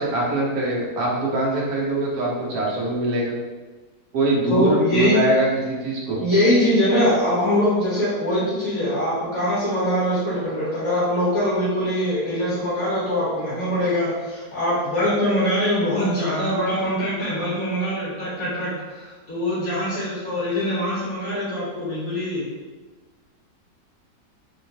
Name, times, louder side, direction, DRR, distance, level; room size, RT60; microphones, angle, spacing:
voice 1, 0.0-3.3 4.1-6.2, right 1 dB, 65° right, -3 dB, 1.3 m, -23 dB
voice 2, 4.5-5.2 6.2-22.5, equal, 60° left, -10 dB, 1.5 m, -22 dB
3.5 x 3.5 x 2.7 m, 1.3 s
omnidirectional pair, 1.7 m